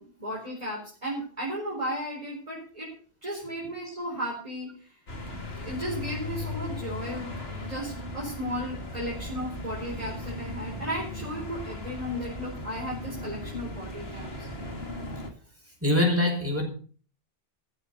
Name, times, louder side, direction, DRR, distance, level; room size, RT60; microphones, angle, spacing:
voice 1, 0.0-2.9 3.2-4.7 5.6-14.5, equal, 35° right, -5 dB, 4.4 m, -35 dB
sound 1, 5.1-15.3, left 2 dB, 75° left, 2.5 m, -37 dB
voice 2, 15.7-16.6, left 1 dB, 15° right, 1 dB, 5.3 m, -24 dB
14.0 x 8.2 x 6.9 m, 0.42 s
omnidirectional pair, 1.0 m